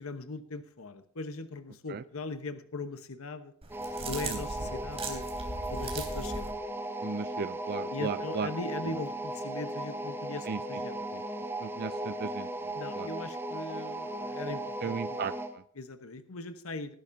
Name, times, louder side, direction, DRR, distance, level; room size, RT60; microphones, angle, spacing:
voice 1, 0.0-3.5 4.0-5.2 5.7-6.5 7.9-11.1 12.8-15.2 15.8-16.9, left 3 dB, 75° left, 10 dB, 1.0 m, -40 dB
sound 1, 3.6-6.5, right 2 dB, 30° right, 3.4 m, -38 dB
sound 2, 3.7-15.6, right 1 dB, 10° right, 0.9 m, -37 dB
voice 2, 7.0-8.5 10.5-10.8 11.1-11.2 11.6-13.1 14.8-15.6, right 5 dB, 45° right, 13 dB, 0.4 m, -36 dB
19.5 x 11.5 x 2.7 m, 0.64 s
head